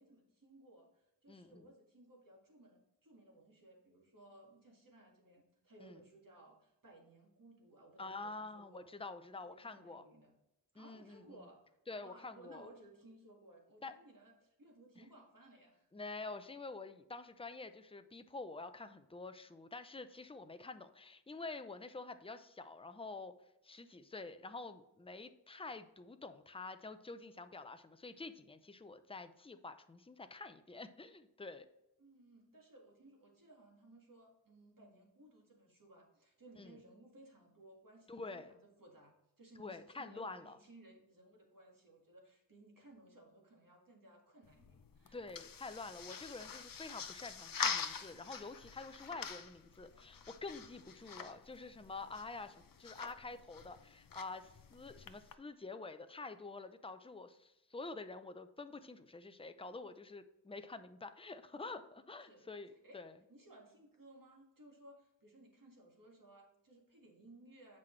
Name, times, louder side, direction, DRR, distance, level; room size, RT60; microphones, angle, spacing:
voice 1, 0.0-8.9 9.3-10.3 10.7-15.9 32.0-45.4 62.2-63.0 63.3-67.8, right 1 dB, 50° right, 0 dB, 1.9 m, -61 dB
voice 2, 1.3-1.7 5.8-6.0 8.0-10.0 10.8-11.4 11.9-12.7 13.8-13.9 15.9-23.3 23.6-31.7 36.6-36.8 38.1-38.5 39.6-40.6 45.1-63.2, left 3 dB, 15° left, 9 dB, 0.5 m, -48 dB
sound 1, 44.4-55.3, left 6 dB, 55° left, 0.6 m, -45 dB
7.5 x 5.8 x 3.2 m, 0.90 s
wide cardioid pair, 55°, 41 cm